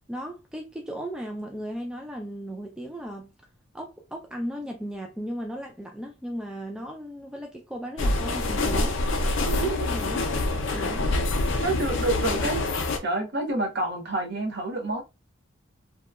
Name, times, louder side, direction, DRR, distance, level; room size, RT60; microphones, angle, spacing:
voice 1, 0.1-3.3 3.7-9.0 9.6-10.3 10.6-11.1 12.2-12.5, equal, 5° right, 0.3 m, -36 dB
sound 1, 8.0-13.0, left 2 dB, 60° left, 0.5 m, -26 dB
voice 2, 9.4-9.8 11.6-12.7 13.0-15.0, right 2 dB, 55° right, 0.7 m, -28 dB
2.8 x 2.2 x 2.3 m
head